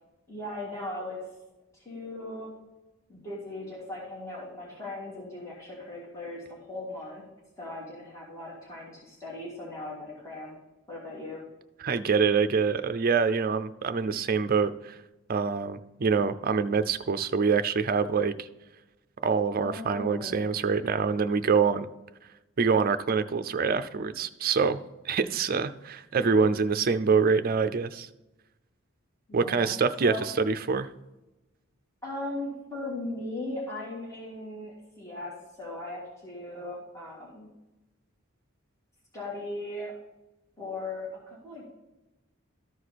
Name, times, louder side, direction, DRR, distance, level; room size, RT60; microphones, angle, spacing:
voice 1, 0.3-1.2 1.8-2.5 3.1-7.2 7.6-10.5 10.9-11.4 19.6-20.6 29.3-30.2 32.0-37.5 39.1-39.9 40.6-41.6, left 2 dB, 15° left, -5 dB, 2.7 m, -38 dB
voice 2, 11.8-15.0 15.3-18.5 19.2-21.9 22.6-24.8 25.0-28.1 29.3-30.9, right 5 dB, 45° right, 11 dB, 0.5 m, -25 dB
13.5 x 4.8 x 4.2 m, 1.0 s
head